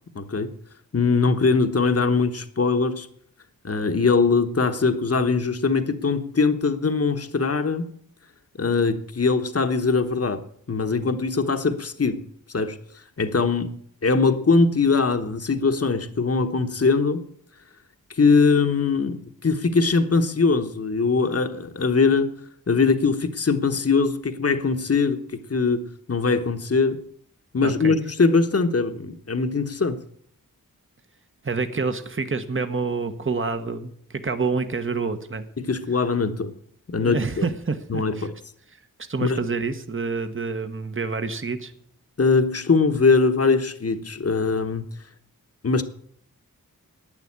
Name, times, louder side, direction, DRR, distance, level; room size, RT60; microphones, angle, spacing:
voice 1, 0.1-0.5 0.9-3.1 3.6-7.9 8.6-10.4 10.7-12.2 12.5-12.8 13.2-13.8 14.0-17.2 18.1-22.4 22.7-27.0 27.5-30.0 35.6-36.5 36.9-37.5 37.9-38.3 39.2-39.4 42.2-44.9 45.6-45.8, left 4 dB, 40° left, 8 dB, 1.2 m, -21 dB
voice 2, 27.6-28.0 31.4-35.4 37.0-38.3 39.1-41.7, right 4 dB, 35° right, 9 dB, 1.2 m, -27 dB
12.0 x 9.1 x 8.6 m, 0.64 s
wide cardioid pair, 70°, 35 cm